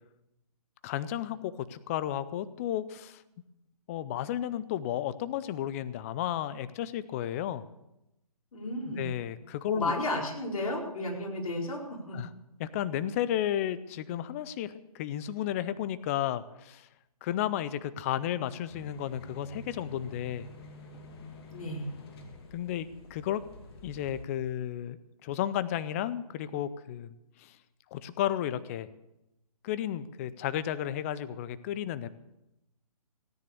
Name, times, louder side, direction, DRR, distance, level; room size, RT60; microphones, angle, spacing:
voice 1, 0.8-3.2 3.9-7.6 8.9-10.2 12.1-12.3 12.6-16.9 17.2-20.5 22.5-23.4 23.8-27.1 27.4-27.6 27.9-28.9 29.6-32.1, left 11 dB, 20° left, 16 dB, 0.5 m, -33 dB
voice 2, 8.5-9.1 9.7-12.2 21.5-21.9, left 1 dB, 65° left, -1 dB, 4.6 m, -33 dB
sound 1, 18.7-24.2, left 1 dB, 40° left, 2.3 m, -47 dB
17.0 x 9.7 x 6.7 m, 0.89 s
hypercardioid pair, 145°, 20 cm